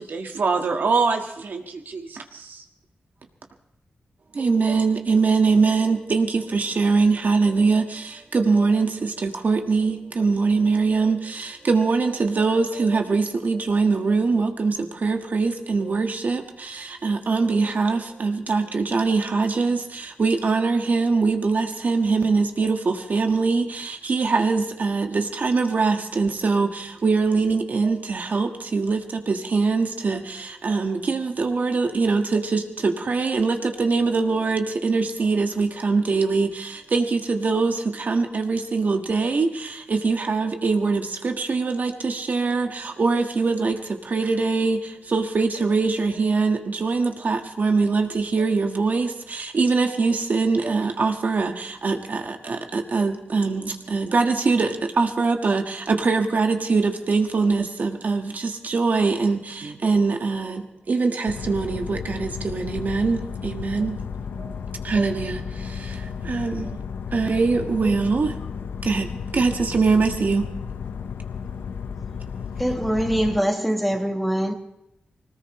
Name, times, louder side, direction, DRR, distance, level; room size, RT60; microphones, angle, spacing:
voice 1, 0.0-2.6, right 4 dB, 70° right, 1.7 m, -25 dB
voice 2, 4.3-64.0 64.4-64.6 64.8-66.8 67.1-68.4 68.8-70.5, right 4 dB, 55° right, 1.6 m, -23 dB
sound 1, 61.3-73.4, left 6 dB, 90° left, 0.6 m, -33 dB
voice 3, 72.6-74.5, equal, ahead, 1.4 m, -23 dB
21.0 x 18.5 x 3.2 m
cardioid pair, 75°, 3 cm